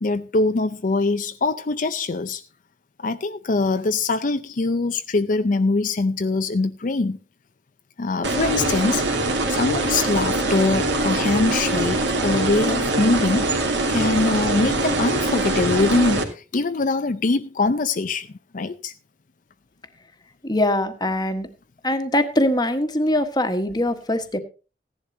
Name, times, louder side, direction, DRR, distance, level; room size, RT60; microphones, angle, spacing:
voice 1, 0.0-2.4 3.0-7.2 8.0-9.1 9.5-13.5 13.9-18.3 18.5-18.9, left 3 dB, 45° left, 0.5 m, -23 dB
sound 1, 8.2-16.2, right 2 dB, 80° right, 2.6 m, -23 dB
voice 2, 20.4-21.5 21.8-24.4, left 1 dB, 25° left, 1.3 m, -22 dB
16.5 x 11.0 x 2.8 m
head